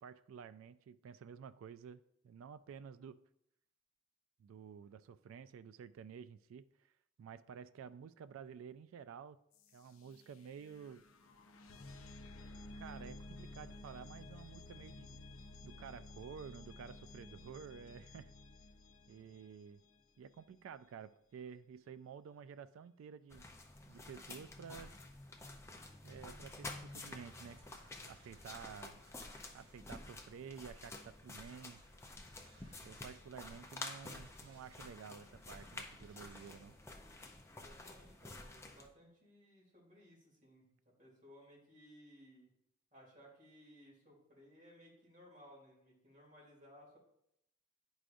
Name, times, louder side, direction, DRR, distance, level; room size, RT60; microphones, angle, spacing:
voice 1, 0.0-3.2 4.4-6.7 7.2-9.4 9.7-11.0 12.7-15.2 15.6-18.3 19.1-19.8 20.2-23.5 23.9-24.9 26.0-27.6 28.0-29.0 29.5-31.8 32.8-36.8, right 7 dB, 85° right, 14 dB, 0.3 m, -52 dB
sound 1, 9.5-20.3, left 2 dB, 85° left, 0.6 m, -54 dB
sound 2, 23.3-38.9, left 2 dB, 15° left, 0.4 m, -50 dB
sound 3, 25.9-38.1, right 2 dB, 60° right, 1.4 m, -69 dB
voice 2, 37.5-42.5 42.9-47.0, equal, 40° right, -5 dB, 2.8 m, -61 dB
10.0 x 4.8 x 2.6 m, 0.77 s
head